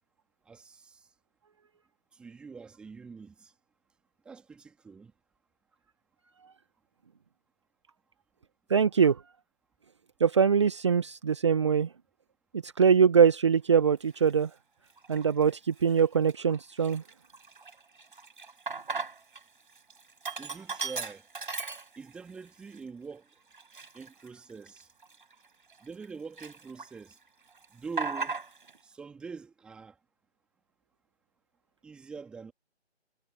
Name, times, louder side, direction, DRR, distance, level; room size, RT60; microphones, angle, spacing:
voice 1, 0.4-1.1 2.1-3.5 4.2-5.1 20.4-21.3 22.0-23.3 23.9-24.9 25.8-27.2 27.7-28.4 28.8-30.0 31.8-32.5, right 5 dB, 5° right, 2.8 m, -44 dB
voice 2, 8.7-9.2 10.2-11.9 12.6-14.5 15.1-17.0, right 6 dB, 25° right, 1.5 m, -23 dB
Sink (filling or washing), 14.1-14.3 15.0-15.5 15.9-16.0 16.3-19.4 19.7-22.3 22.7-22.8 23.5-26.1 26.4-27.1 27.4-28.8, right 4 dB, 50° right, 5.9 m, -37 dB
figure-of-eight pair, 155°, 34 cm